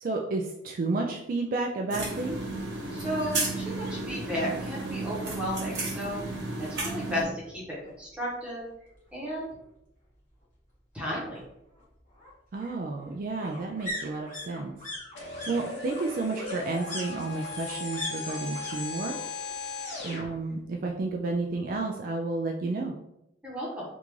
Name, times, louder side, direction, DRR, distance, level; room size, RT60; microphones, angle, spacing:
voice 1, 0.0-2.4 12.5-14.8 15.5-19.1 20.0-22.9, right 3 dB, 50° right, 1 dB, 0.3 m, -31 dB
sound 1, 1.9-7.2, right 2 dB, 65° right, 1.0 m, -33 dB
voice 2, 2.9-6.3 6.6-8.6 9.1-9.5 10.9-11.4 23.4-23.8, equal, 5° right, -6 dB, 1.1 m, -34 dB
sound 2, 7.9-8.0 8.3-8.4 8.7-9.7 11.0-18.8 19.0-19.6 19.8-20.9 21.2-21.3, left 1 dB, 45° left, 1.5 m, -41 dB
sound 3, 15.1-20.3, left 3 dB, 75° left, 0.9 m, -37 dB
3.4 x 2.5 x 3.1 m, 0.83 s
head